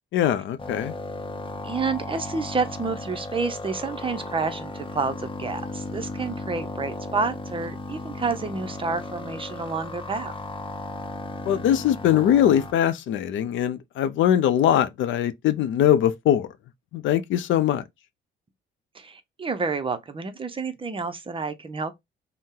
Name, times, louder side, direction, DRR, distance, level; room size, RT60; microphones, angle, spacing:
voice 1, 0.1-1.0 11.4-16.5 16.9-17.8, left 10 dB, 75° left, 0.5 m, -21 dB
sound 1, 0.6-12.7, left 2 dB, 25° left, 0.8 m, -35 dB
voice 2, 1.6-10.3 18.9-21.9, right 4 dB, 25° right, 0.6 m, -29 dB
2.7 x 2.1 x 3.6 m
cardioid pair, 90°, 20 cm